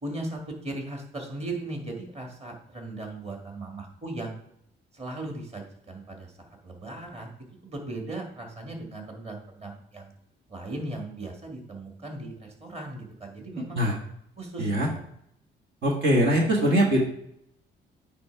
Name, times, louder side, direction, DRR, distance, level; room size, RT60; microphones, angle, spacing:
voice 1, 0.0-4.3 4.9-7.3 7.6-10.1 10.5-13.8 14.4-15.1, right 2 dB, 30° right, 1 dB, 2.0 m, -37 dB
voice 2, 15.8-17.0, equal, 65° right, -2 dB, 1.6 m, -22 dB
9.3 x 3.4 x 4.7 m, 0.73 s
cardioid pair, 90°, 20 cm